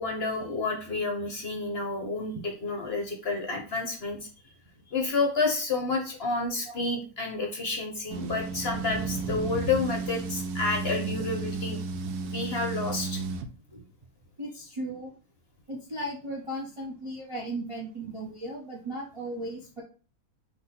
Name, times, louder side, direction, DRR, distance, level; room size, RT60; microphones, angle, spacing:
voice 1, 0.0-4.3 4.9-11.8 12.2-13.2, left 3 dB, 50° left, 2 dB, 0.9 m, -30 dB
sound 1, 8.1-13.5, right 4 dB, 85° right, 1.1 m, -33 dB
voice 2, 14.4-15.1 15.7-19.8, right 1 dB, 30° right, -3 dB, 0.5 m, -36 dB
3.9 x 2.8 x 4.2 m, 0.38 s
omnidirectional pair, 1.6 m